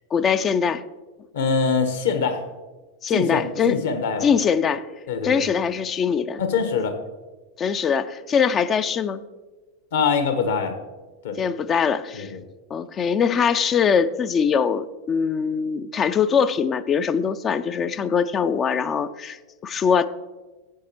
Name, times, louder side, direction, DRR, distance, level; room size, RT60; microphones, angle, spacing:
voice 1, 0.1-0.8 3.0-3.8 4.2-4.8 5.2-6.4 7.6-9.2 11.4-12.3 12.7-19.4 19.6-20.1, left 6 dB, 25° left, 13 dB, 0.4 m, -22 dB
voice 2, 1.3-2.4 3.1-4.3 5.1-5.4 6.4-7.0 9.9-10.8 11.2-11.4 12.1-12.4, left 5 dB, 55° left, 7 dB, 1.2 m, -23 dB
15.0 x 8.5 x 3.0 m, 1.2 s
figure-of-eight pair, 90°, 0 cm